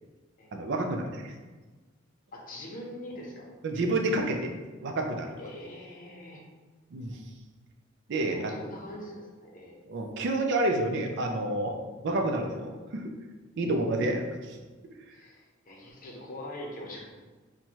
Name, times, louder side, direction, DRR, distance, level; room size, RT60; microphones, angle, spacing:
voice 1, 0.5-1.3 3.6-4.5 4.8-5.3 6.9-7.2 8.1-8.5 9.9-11.8 12.0-13.1 13.6-14.6, right 2 dB, 60° right, 3 dB, 0.4 m, -29 dB
voice 2, 2.3-3.5 5.4-6.4 8.3-9.8 13.7-13.8 15.1-17.1, left 1 dB, 45° left, -1 dB, 0.7 m, -43 dB
4.4 x 2.2 x 2.8 m, 1.3 s
head